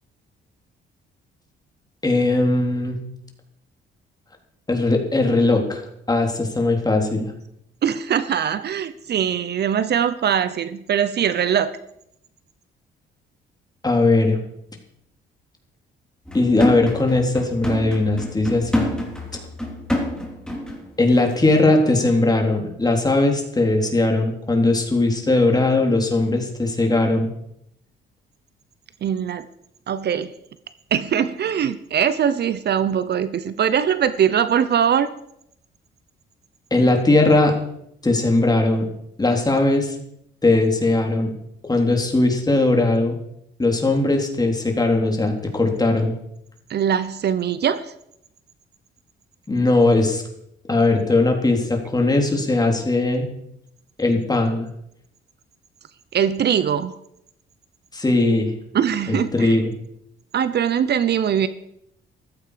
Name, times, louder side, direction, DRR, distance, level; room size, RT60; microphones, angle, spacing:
voice 1, 2.0-3.0 4.7-7.3 13.8-14.4 16.3-18.9 21.0-27.3 36.7-37.5 38.0-38.9 39.2-40.0 40.4-41.3 41.7-43.2 43.6-46.1 49.5-50.2 50.7-53.3 54.0-54.7 57.9-58.5 59.1-59.7, left 2 dB, 20° left, 2 dB, 3.6 m, -19 dB
voice 2, 7.8-11.8 29.0-29.5 29.9-30.3 30.9-35.1 46.7-47.9 56.1-57.0 58.7-59.6 60.3-61.5, right 8 dB, 55° right, 14 dB, 0.8 m, -21 dB
sound 1, 16.3-20.9 21.2-21.3, left 1 dB, 5° left, 3.5 m, -27 dB
14.5 x 14.5 x 5.2 m, 0.77 s
cardioid pair, 90°, 20 cm